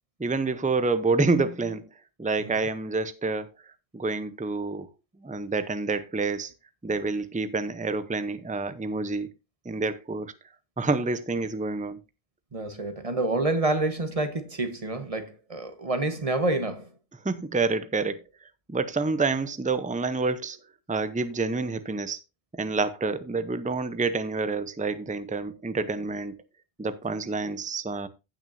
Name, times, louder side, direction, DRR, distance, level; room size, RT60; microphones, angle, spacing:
voice 1, 0.2-1.9 2.2-3.5 3.9-4.9 5.2-6.5 6.8-9.3 9.6-10.3 10.8-12.0 17.2-18.2 18.7-20.6 20.9-22.2 22.5-26.4 26.8-28.1, right 3 dB, 10° right, 0.5 m, -28 dB
voice 2, 12.5-16.9, right 2 dB, 30° right, 1.3 m, -28 dB
15.5 x 6.1 x 2.6 m
omnidirectional pair, 1.1 m